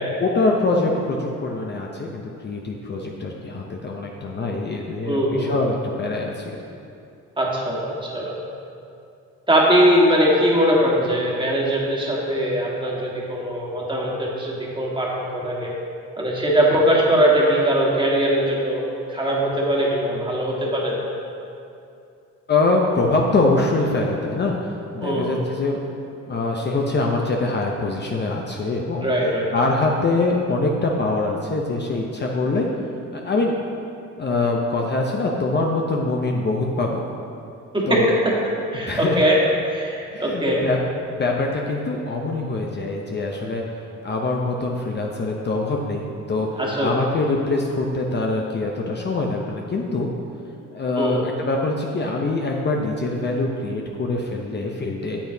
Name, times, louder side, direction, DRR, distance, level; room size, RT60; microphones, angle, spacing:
voice 1, 0.2-6.6 22.5-24.6 24.9-25.8 26.3-29.1 29.5-32.7 33.1-33.5 34.2-37.1 37.9-38.1 38.9-39.3 40.1-40.8 41.1-43.6 44.0-46.5 46.8-50.1 50.7-55.2, left 2 dB, 35° left, 0 dB, 0.7 m, -24 dB
voice 2, 5.1-5.5 7.4-8.4 9.5-15.8 16.2-21.0 25.0-25.4 29.0-29.5 37.7-38.3 38.7-39.4 39.7-40.7 46.6-47.0 51.0-51.2, equal, 15° right, -4 dB, 1.6 m, -21 dB
8.6 x 7.8 x 2.8 m, 2.6 s
cardioid pair, 90°, 30 cm